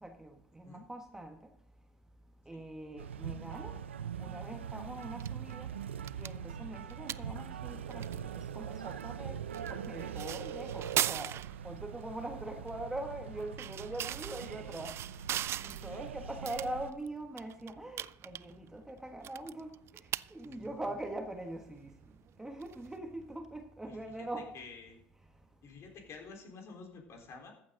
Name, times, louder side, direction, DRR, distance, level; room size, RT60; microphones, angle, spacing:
voice 1, 0.0-1.4 2.5-3.8 4.2-5.7 6.2-11.3 11.6-15.0 15.6-19.8 20.3-21.9 22.4-24.5, right 1 dB, 10° right, 5 dB, 1.4 m, -42 dB
sound 1, 3.0-16.9, right 8 dB, 90° right, 0.6 m, -42 dB
sound 2, 5.0-23.4, right 11 dB, 45° right, 0.3 m, -42 dB
voice 2, 20.4-20.8 23.9-24.0 24.5-24.9 25.6-27.5, left 4 dB, 45° left, 2 dB, 3.9 m, -50 dB
14.5 x 8.8 x 3.8 m, 0.75 s
hypercardioid pair, 75°, 6 cm